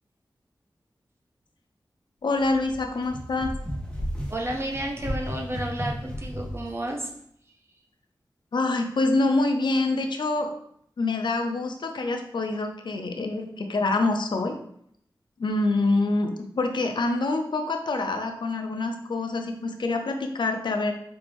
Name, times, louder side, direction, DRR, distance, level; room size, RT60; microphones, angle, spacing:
voice 1, 2.2-3.5 8.5-10.5 11.0-14.6 15.4-20.9, left 2 dB, 75° left, 5 dB, 0.5 m, -26 dB
sound 1, 2.4-6.7, equal, 15° left, 1.1 m, -34 dB
voice 2, 4.3-7.1, right 1 dB, 30° right, 1 dB, 0.7 m, -31 dB
4.4 x 2.6 x 3.4 m, 0.69 s
wide cardioid pair, 80°, 8 cm